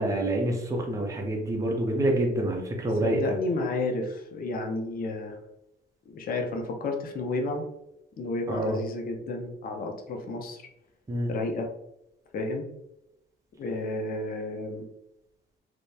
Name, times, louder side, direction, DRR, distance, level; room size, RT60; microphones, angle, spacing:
voice 1, 0.0-3.4 8.5-8.8 11.1-11.3, right 1 dB, 15° right, 1 dB, 0.5 m, -27 dB
voice 2, 3.0-5.3 6.1-7.6 8.2-10.6 11.3-11.7 12.3-12.7 13.6-14.9, left 2 dB, 45° left, 2 dB, 0.5 m, -31 dB
2.8 x 2.1 x 2.2 m, 0.84 s
cardioid pair, 90°, 20 cm